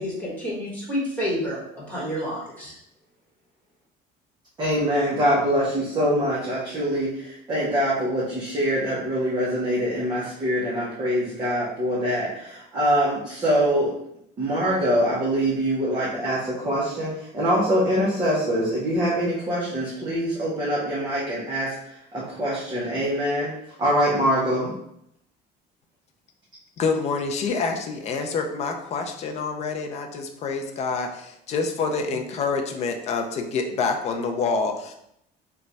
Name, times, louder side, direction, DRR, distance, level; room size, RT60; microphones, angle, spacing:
voice 1, 0.0-2.7, equal, 10° left, -7 dB, 1.3 m, -29 dB
voice 2, 4.6-13.9 14.4-23.5 23.8-24.7, equal, 25° right, -7 dB, 0.7 m, -24 dB
voice 3, 26.8-34.9, left 4 dB, 40° left, 4 dB, 0.4 m, -27 dB
3.1 x 2.3 x 3.9 m, 0.76 s
cardioid pair, 175°, 18 cm